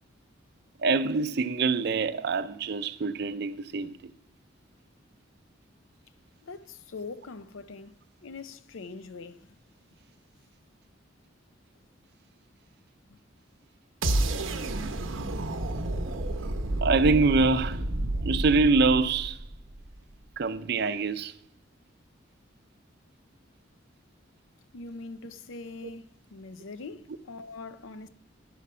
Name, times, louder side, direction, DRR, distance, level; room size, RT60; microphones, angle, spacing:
voice 1, 0.8-4.0 16.8-17.9 18.2-19.4 20.4-21.3, right 4 dB, 55° right, 0.5 m, -25 dB
voice 2, 6.4-8.0 8.2-9.5 13.1-13.2 24.7-28.1, left 3 dB, 85° left, 0.6 m, -42 dB
sound 1, 14.0-20.0, right 1 dB, 85° right, 0.8 m, -30 dB
11.0 x 5.1 x 5.5 m
head